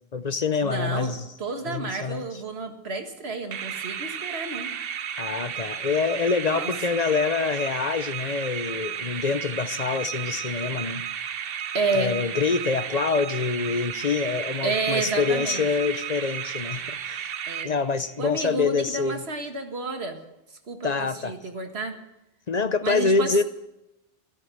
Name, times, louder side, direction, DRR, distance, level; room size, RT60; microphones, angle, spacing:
voice 1, 0.0-1.3 1.7-2.2 5.2-11.1 11.9-17.2 17.6-19.2 20.8-21.3 22.5-23.4, left 4 dB, 45° left, 0.8 m, -26 dB
voice 2, 0.6-4.7 6.4-6.7 11.7-12.2 14.6-15.6 17.5-17.7 18.2-20.2 20.7-22.0 22.8-23.3, right 3 dB, 85° right, 2.0 m, -30 dB
sound 1, 3.5-18.2, right 8 dB, 70° right, 0.9 m, -33 dB
14.0 x 13.5 x 7.8 m
omnidirectional pair, 1.0 m